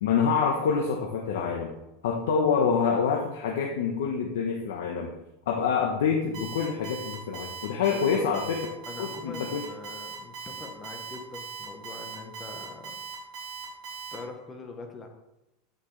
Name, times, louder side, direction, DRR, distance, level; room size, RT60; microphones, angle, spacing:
voice 1, 0.0-1.7 2.0-5.1 5.5-8.7 9.0-9.6, left 6 dB, 80° left, 0 dB, 1.1 m, -26 dB
Alarm, 6.3-14.1, right 6 dB, 35° right, 3.8 m, -39 dB
voice 2, 7.9-8.3 8.9-13.0 14.1-15.1, left 3 dB, 15° left, 3 dB, 1.1 m, -43 dB
9.2 x 9.0 x 3.3 m, 0.93 s
supercardioid pair, 180°, 0 cm